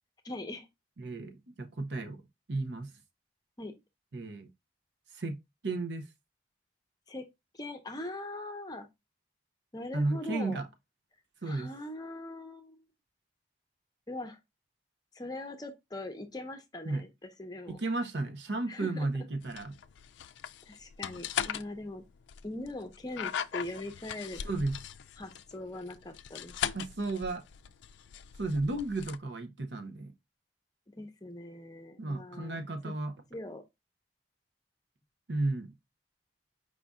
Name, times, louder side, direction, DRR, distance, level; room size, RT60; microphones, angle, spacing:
voice 1, 0.2-0.7 3.6-3.7 7.1-7.3 7.5-8.9 9.7-10.7 11.4-12.8 14.1-14.4 15.1-17.8 18.7-19.1 20.7-22.0 22.4-24.4 25.2-26.6 30.9-32.9 33.3-33.6, left 1 dB, 20° left, 0.6 m, -41 dB
voice 2, 1.0-2.2 2.5-2.9 4.1-4.5 5.1-5.4 5.6-6.0 9.9-10.7 11.4-11.7 16.9-17.0 17.7-19.7 24.4-24.8 26.7-27.4 28.4-30.1 32.0-33.1 35.3-35.7, right 2 dB, 75° right, 0.7 m, -33 dB
sound 1, 19.4-29.2, left 8 dB, 85° left, 0.3 m, -39 dB
4.9 x 2.5 x 3.5 m
head